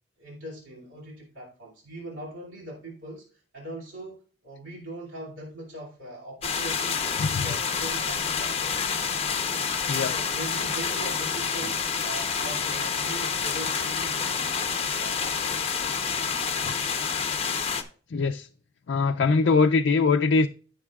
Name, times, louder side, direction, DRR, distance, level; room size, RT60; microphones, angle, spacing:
voice 1, 0.2-8.7 10.0-15.7, right 1 dB, 85° right, 2.6 m, -41 dB
sound 1, 6.4-17.8, left 6 dB, 35° left, 0.9 m, -28 dB
voice 2, 18.1-18.5 18.9-20.5, left 4 dB, 65° left, 0.4 m, -22 dB
14.5 x 6.5 x 2.4 m
head